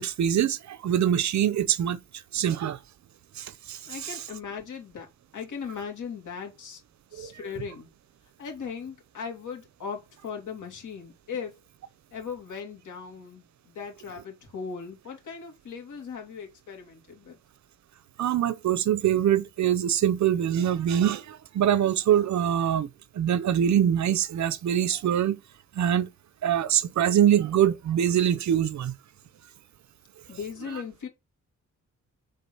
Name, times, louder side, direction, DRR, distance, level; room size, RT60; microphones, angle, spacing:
voice 1, 0.0-2.0 2.3-2.8 3.4-4.2 7.2-7.3 18.2-22.9 23.2-25.4 25.8-26.1 26.4-28.9 30.7-30.8, right 10 dB, 70° right, 0.7 m, -24 dB
voice 2, 3.9-5.1 5.3-6.8 7.1-7.9 8.4-11.6 12.1-17.4 30.3-31.1, left 6 dB, 90° left, 2.6 m, -38 dB
7.8 x 3.7 x 5.5 m
wide cardioid pair, 150°, 30 cm